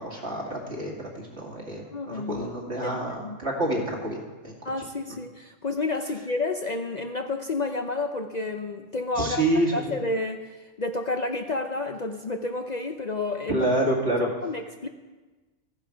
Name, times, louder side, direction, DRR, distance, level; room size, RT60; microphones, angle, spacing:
voice 1, 0.0-4.7 9.2-10.0 13.5-14.3, right 1 dB, 60° right, -1 dB, 2.7 m, -28 dB
voice 2, 1.9-2.5 3.2-3.4 4.6-13.6 14.4-14.9, left 2 dB, 45° left, 5 dB, 0.6 m, -30 dB
14.5 x 11.0 x 5.1 m, 1.3 s
omnidirectional pair, 1.3 m